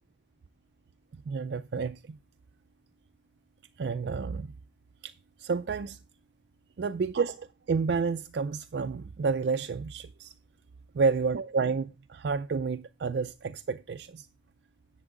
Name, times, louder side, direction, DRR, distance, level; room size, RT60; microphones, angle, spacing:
voice 1, 1.1-2.2 3.8-4.5 5.0-6.0 6.8-10.3 10.9-14.3, right 5 dB, 65° right, 0.4 m, -30 dB
10.5 x 8.1 x 3.7 m
head